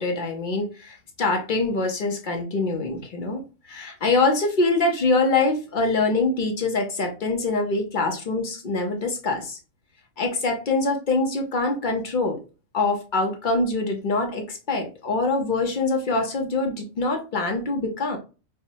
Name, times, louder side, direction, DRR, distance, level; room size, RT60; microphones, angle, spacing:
voice 1, 0.0-3.4 3.7-9.6 10.2-12.4 12.7-18.2, left 3 dB, 50° left, 3 dB, 0.6 m, -24 dB
4.5 x 2.1 x 2.7 m, 0.33 s
omnidirectional pair, 1.4 m